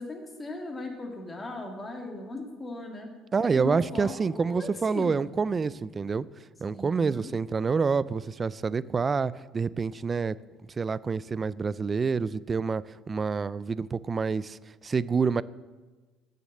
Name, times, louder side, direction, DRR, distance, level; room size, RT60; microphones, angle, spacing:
voice 1, 0.0-3.1 3.6-5.3 6.7-7.3, left 2 dB, 25° left, 2 dB, 2.3 m, -38 dB
voice 2, 3.3-6.3 6.6-10.4 10.8-15.4, right 5 dB, 30° right, 19 dB, 0.3 m, -27 dB
9.2 x 6.6 x 7.6 m, 1.3 s
supercardioid pair, 95°, 0 cm